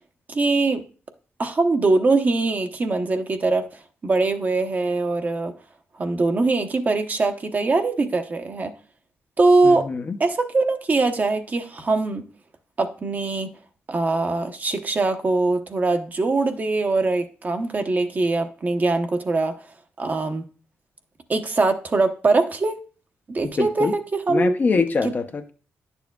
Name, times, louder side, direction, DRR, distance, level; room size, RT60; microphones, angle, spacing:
voice 1, 0.3-0.8 1.4-5.5 6.0-8.7 9.4-9.8 10.2-12.3 12.8-13.5 13.9-19.5 20.0-20.4 21.3-22.8 23.3-24.6 25.0-25.1, right 3 dB, 35° right, 7 dB, 0.8 m, -22 dB
voice 2, 9.6-10.2 23.6-24.0 24.3-25.5, left 4 dB, 40° left, 7 dB, 0.7 m, -24 dB
10.5 x 7.0 x 2.3 m, 0.38 s
cardioid pair, 85°, 5 cm